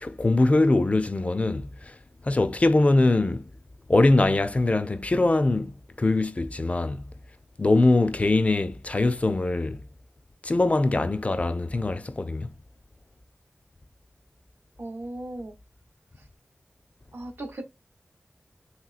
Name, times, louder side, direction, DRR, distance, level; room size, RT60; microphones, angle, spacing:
voice 1, 0.0-2.0 2.2-3.5 3.9-7.0 7.6-9.8 10.4-12.5, left 2 dB, 35° left, 0.3 m, -22 dB
voice 2, 14.8-15.6 17.1-17.6, right 1 dB, 60° right, 0.6 m, -36 dB
3.1 x 2.8 x 2.4 m
wide cardioid pair, 75°, 4 cm